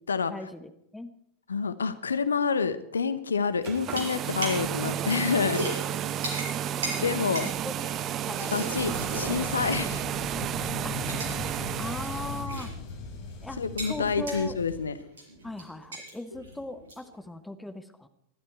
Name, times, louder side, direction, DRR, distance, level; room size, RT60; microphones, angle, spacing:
voice 1, 0.3-1.1 4.2-4.3 7.6-7.7 8.3-9.1 10.8-11.2 11.8-12.7 13.4-13.6 13.9-14.6 15.4-18.1, left 2 dB, 5° left, 10 dB, 1.2 m, -39 dB
voice 2, 1.5-5.7 7.0-7.5 8.5-10.1 13.6-15.0, left 5 dB, 70° left, 14 dB, 0.9 m, -28 dB
sound 1, 3.6-12.5, right 10 dB, 30° right, 0.6 m, -32 dB
sound 2, 3.9-4.7 5.0-10.1 10.4-10.5 10.9-11.5 11.8-13.0 13.3-17.1, right 1 dB, 65° right, 6.4 m, -38 dB
sound 3, 8.7-14.8, left 5 dB, 45° left, 3.3 m, -39 dB
20.5 x 12.5 x 4.6 m, 0.76 s
figure-of-eight pair, 90°, 0 cm